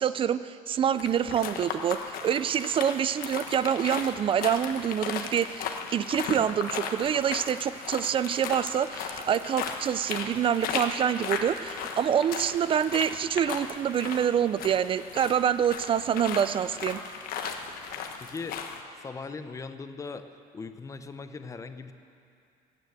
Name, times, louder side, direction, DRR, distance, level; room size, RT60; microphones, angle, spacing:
voice 1, 0.0-17.0, right 9 dB, 35° right, 15 dB, 0.4 m, -26 dB
sound 1, 0.9-18.8, left 6 dB, 65° left, 1.2 m, -36 dB
Applause / Crowd, 5.8-14.0, equal, 15° right, 2.8 m, -52 dB
voice 2, 18.2-18.7 19.0-20.3 20.5-21.9, left 4 dB, 20° left, 10 dB, 0.7 m, -39 dB
15.5 x 10.5 x 8.0 m, 2.5 s
cardioid pair, 150°, 16 cm